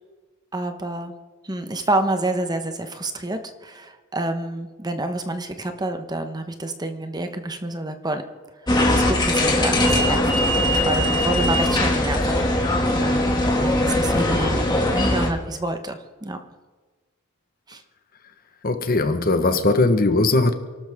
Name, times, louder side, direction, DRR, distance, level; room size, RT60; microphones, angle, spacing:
voice 1, 0.5-1.1 1.4-8.2 8.6-10.3 10.6-12.2 12.5-12.7 13.0-13.3 13.6-14.6 14.9-16.4 17.7-17.8, right 2 dB, 20° right, 1.1 m, -28 dB
sound 1, 8.7-15.3, left 1 dB, 20° left, 2.2 m, -20 dB
voice 2, 18.6-20.5, left 2 dB, 40° left, 1.2 m, -19 dB
28.5 x 12.5 x 3.6 m
head